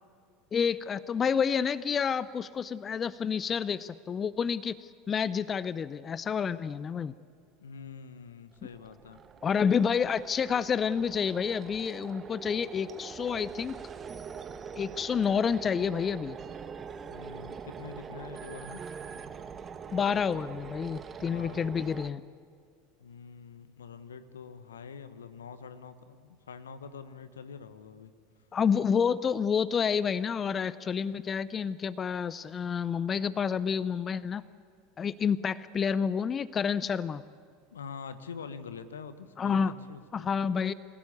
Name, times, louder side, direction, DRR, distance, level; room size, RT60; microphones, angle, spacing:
voice 1, 0.5-7.1 9.4-13.8 14.8-16.4 19.9-22.2 28.5-34.4 35.0-37.2 39.4-39.7 40.1-40.7, left 6 dB, 30° left, 18 dB, 0.5 m, -29 dB
voice 2, 7.6-9.2 17.1-18.8 21.1-21.7 23.0-28.1 37.7-40.3, left 6 dB, 80° left, 12 dB, 1.2 m, -45 dB
sound 1, 8.5-22.1, right 6 dB, 30° right, 1.2 m, -43 dB
27.0 x 17.0 x 8.5 m, 2.2 s
figure-of-eight pair, 80°, 0 cm